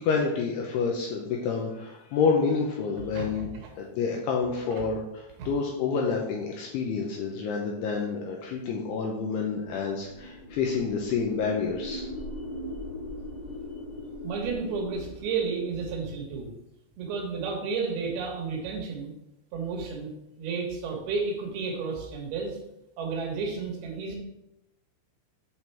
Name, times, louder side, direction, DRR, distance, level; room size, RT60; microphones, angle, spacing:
voice 1, 0.0-3.5 3.8-12.1, left 5 dB, 80° left, 0 dB, 2.3 m, -28 dB
voice 2, 3.1-3.7 4.8-4.9 5.4-5.5 14.2-16.5 17.0-19.1 19.5-22.6 23.0-24.1, right 4 dB, 70° right, 0 dB, 2.6 m, -32 dB
sound 1, 9.6-15.7, left 1 dB, 45° left, 2.3 m, -40 dB
8.5 x 3.8 x 4.4 m, 0.88 s
omnidirectional pair, 5.5 m